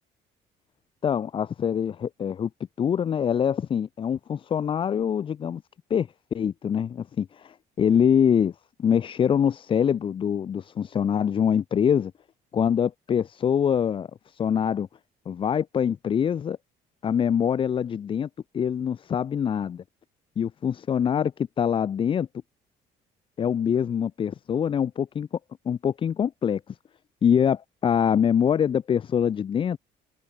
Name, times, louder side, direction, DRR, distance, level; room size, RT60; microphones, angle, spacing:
voice 1, 1.0-2.5 2.8-5.6 5.9-8.5 8.8-12.1 12.5-14.9 15.3-16.6 17.0-18.3 18.5-19.8 20.4-21.3 21.6-22.3 23.4-25.3 25.7-26.6 27.2-29.8, left 8 dB, 30° left, 0.4 m, -24 dB
cardioid pair, 110°, 17 cm